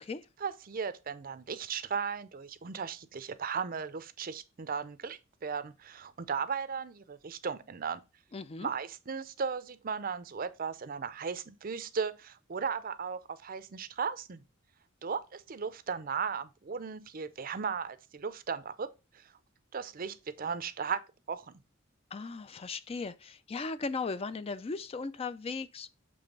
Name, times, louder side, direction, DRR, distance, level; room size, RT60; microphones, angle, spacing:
voice 1, 0.4-8.0 8.6-14.4 15.0-18.9 19.2-19.3 19.7-21.0 21.3-21.5, right 6 dB, 45° right, 0.5 m, -36 dB
voice 2, 8.3-8.7 22.1-25.9, left 4 dB, 30° left, 0.3 m, -37 dB
7.0 x 3.2 x 5.2 m
head